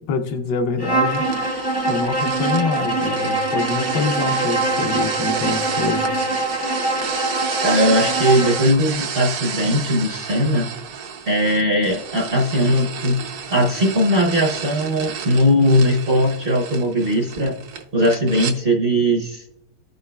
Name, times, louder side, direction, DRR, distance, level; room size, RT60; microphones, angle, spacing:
voice 1, 0.1-1.2 1.9-6.2, left 4 dB, 75° left, 1.3 m, -25 dB
Bowed string instrument, 0.8-8.7, right 2 dB, 25° left, 0.5 m, -23 dB
sound 1, 1.1-18.6, right 7 dB, 80° right, 1.5 m, -31 dB
voice 2, 7.6-10.7 11.3-13.2 13.5-17.6 17.9-19.4, equal, 50° right, 0.7 m, -19 dB
14.5 x 5.3 x 2.2 m
omnidirectional pair, 1.9 m